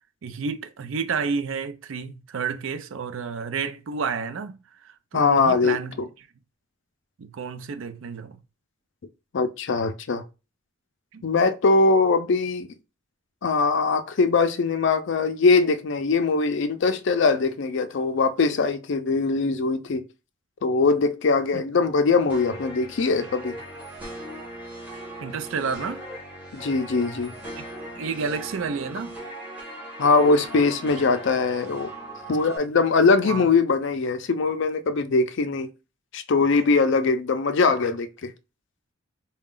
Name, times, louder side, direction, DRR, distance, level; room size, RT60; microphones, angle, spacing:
voice 1, 0.2-6.0 7.2-8.4 11.1-11.2 21.5-21.6 25.2-26.0 27.6-27.7 27.9-29.1 33.2-33.5, right 5 dB, 90° right, 0.4 m, -30 dB
voice 2, 5.1-6.1 9.3-10.2 11.2-12.7 13.4-20.1 20.6-23.6 26.5-27.3 30.0-31.9 32.3-35.7 36.1-38.3, left 4 dB, 65° left, 0.5 m, -22 dB
sound 1, 22.3-32.6, right 1 dB, 10° right, 1.4 m, -39 dB
3.9 x 2.2 x 3.7 m
head